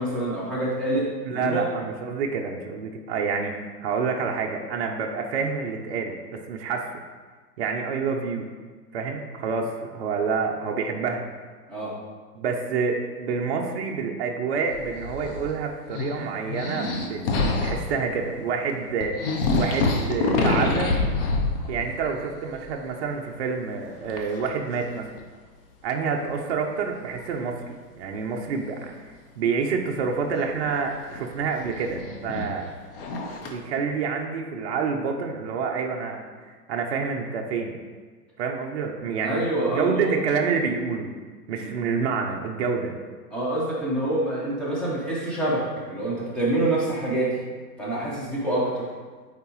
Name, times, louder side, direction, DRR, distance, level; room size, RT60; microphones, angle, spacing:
voice 1, 0.0-1.6 11.7-12.0 39.2-40.2 41.6-41.7 43.3-47.4 47.8-48.9, right 1 dB, ahead, -7 dB, 0.8 m, -26 dB
voice 2, 1.2-6.9 7.6-8.4 8.9-11.2 12.4-20.9 21.6-25.1 25.8-29.1 29.4-32.7 33.3-37.7 38.4-41.1 41.5-42.9, right 5 dB, 40° right, 1 dB, 0.6 m, -28 dB
sound 1, 14.7-15.6 15.9-17.9 18.7-18.8 19.0-22.1 22.4-22.9 24.1-24.5 25.2-25.3 27.2-27.3 30.3-33.5, left 3 dB, 35° left, 0.7 m, -26 dB
8.3 x 4.0 x 3.0 m, 1.4 s
hypercardioid pair, 145°, 50 cm